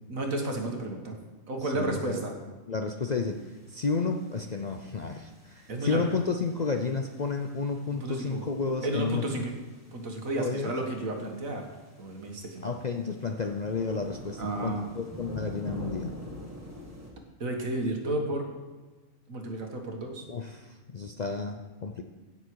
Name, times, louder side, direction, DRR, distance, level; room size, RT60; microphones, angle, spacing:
voice 1, 0.1-1.2 1.5-2.3 5.7-6.1 8.0-8.4 8.8-9.5 9.9-11.7 12.0-12.7 14.4-14.8 17.4-18.5 19.3-20.3, right 2 dB, 75° right, 2 dB, 2.0 m, -32 dB
voice 2, 1.6-2.2 2.7-3.4 3.7-9.4 10.4-10.7 12.6-16.1 20.3-20.7 20.9-22.0, left 4 dB, 45° left, 4 dB, 0.6 m, -31 dB
sound 1, 3.2-17.1, equal, 10° right, 1.6 m, -46 dB
16.0 x 6.7 x 4.7 m, 1.3 s
omnidirectional pair, 1.4 m